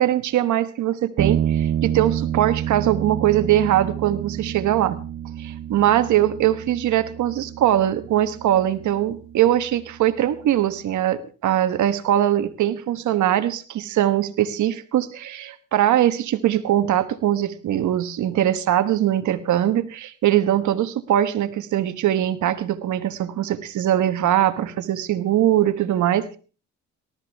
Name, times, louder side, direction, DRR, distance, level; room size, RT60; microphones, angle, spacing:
voice 1, 0.0-5.0 5.4-26.4, right 12 dB, 75° right, 11 dB, 1.4 m, -21 dB
sound 1, 1.2-10.7, right 10 dB, 45° right, 0.7 m, -29 dB
18.5 x 13.5 x 3.5 m, 0.37 s
cardioid pair, 90°, 30 cm